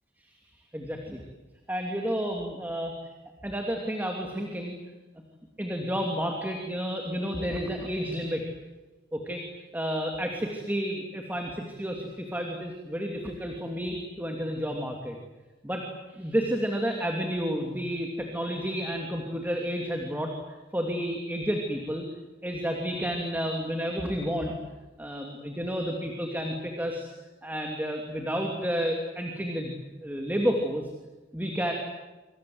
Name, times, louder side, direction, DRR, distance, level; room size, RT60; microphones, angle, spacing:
voice 1, 0.7-1.2 1.7-2.9 3.4-4.8 5.6-8.4 9.1-9.4 9.7-15.2 15.6-22.0 22.4-24.5 25.0-27.1 27.4-29.7 30.0-30.8 31.3-31.7, equal, 10° right, 2 dB, 2.9 m, -31 dB
27.0 x 26.0 x 8.0 m, 1.1 s
head